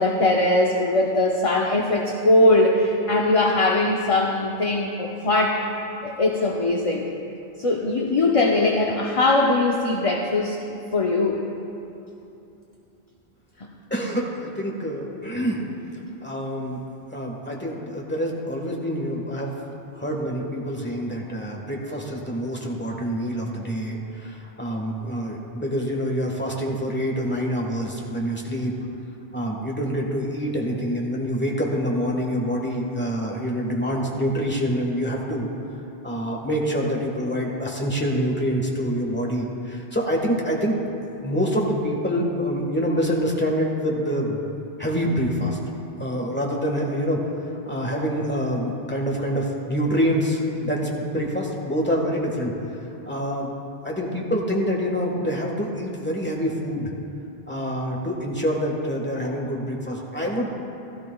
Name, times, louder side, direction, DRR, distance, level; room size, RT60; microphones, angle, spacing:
voice 1, 0.0-5.6 6.0-7.0 7.6-10.6 10.9-11.4, left 2 dB, 40° left, 0 dB, 0.7 m, -20 dB
voice 2, 13.9-15.6 16.2-16.8 17.1-19.5 19.9-28.7 29.3-35.5 36.0-40.8 41.2-44.4 44.8-45.6 46.0-47.2 47.7-52.5 53.0-53.5 53.8-56.9 57.5-60.5, equal, 10° left, -1 dB, 1.4 m, -26 dB
16.5 x 13.0 x 2.3 m, 2.8 s
omnidirectional pair, 1.0 m